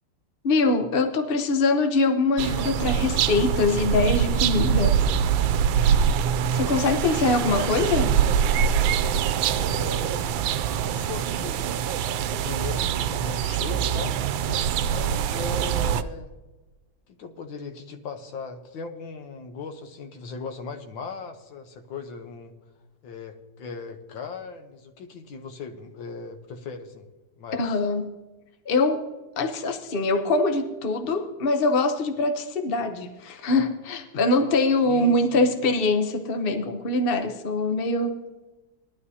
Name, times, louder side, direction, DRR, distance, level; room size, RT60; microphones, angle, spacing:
voice 1, 0.4-5.0 6.5-8.1 27.5-28.1 28.7-29.1 29.4-38.3, left 3 dB, 50° left, 6 dB, 0.6 m, -23 dB
sound 1, 2.4-16.0, right 8 dB, 90° right, 1.4 m, -24 dB
voice 2, 9.5-10.3 10.8-11.7 12.3-14.2 14.9-16.3 17.2-22.5 23.0-27.1 27.4-27.8 34.9-35.5, left 4 dB, 85° left, 6 dB, 1.8 m, -38 dB
18.5 x 12.0 x 2.8 m, 1.1 s
omnidirectional pair, 2.1 m